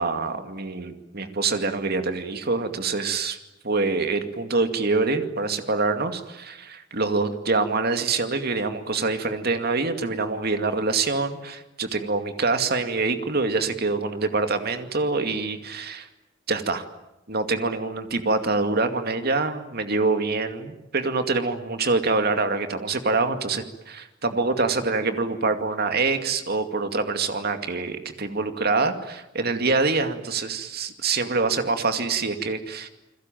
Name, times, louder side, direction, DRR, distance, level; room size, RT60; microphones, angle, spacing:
voice 1, 0.0-3.4 3.6-16.1 16.5-16.8 17.3-32.9, right 3 dB, 50° right, 7 dB, 2.4 m, -25 dB
29.0 x 21.5 x 9.2 m, 0.91 s
head